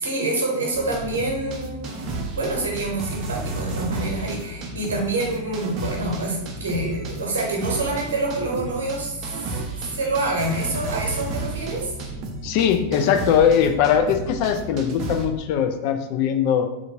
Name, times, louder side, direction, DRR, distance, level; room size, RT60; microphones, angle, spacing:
voice 1, 0.0-9.5 9.8-11.9, right 2 dB, 65° right, 0 dB, 0.8 m, -27 dB
sound 1, 0.7-15.3, right 2 dB, 35° right, 0.5 m, -32 dB
voice 2, 12.4-16.7, left 8 dB, 45° left, 6 dB, 0.3 m, -20 dB
3.4 x 2.4 x 2.8 m, 0.90 s
figure-of-eight pair, 90°, 0 cm